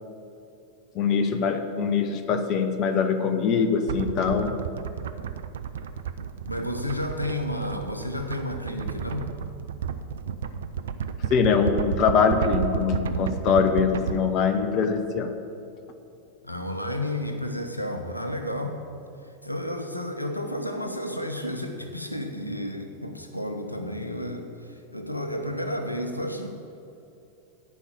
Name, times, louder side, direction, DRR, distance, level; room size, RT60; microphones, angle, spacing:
voice 1, 0.9-4.6 11.3-15.4, left 6 dB, 35° left, 8 dB, 0.8 m, -23 dB
sound 1, 3.9-14.2, right 7 dB, 60° right, 0.5 m, -32 dB
voice 2, 6.4-9.3 16.4-18.8 19.2-26.5, left 1 dB, 85° left, 5 dB, 0.8 m, -31 dB
11.0 x 5.5 x 8.6 m, 2.7 s
figure-of-eight pair, 90°, 0 cm